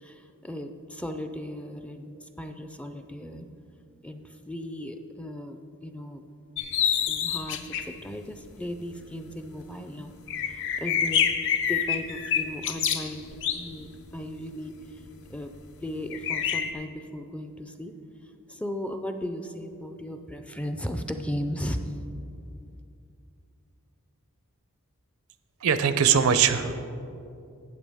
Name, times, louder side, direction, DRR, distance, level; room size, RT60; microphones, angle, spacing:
voice 1, 0.0-3.5 4.0-6.2 7.1-10.1 10.4-11.3 11.7-15.5 15.8-17.9 18.2-22.0, equal, 5° left, 7 dB, 0.4 m, -36 dB
sound 1, 6.6-7.9 8.5-8.6 9.0-9.1 9.2-9.3 9.6-9.7 10.2-14.3 15.1-15.4 16.1-16.7, left 8 dB, 60° left, 0.6 m, -27 dB
voice 2, 25.6-26.7, right 7 dB, 75° right, 11 dB, 0.5 m, -21 dB
12.5 x 8.3 x 3.5 m, 2.6 s
head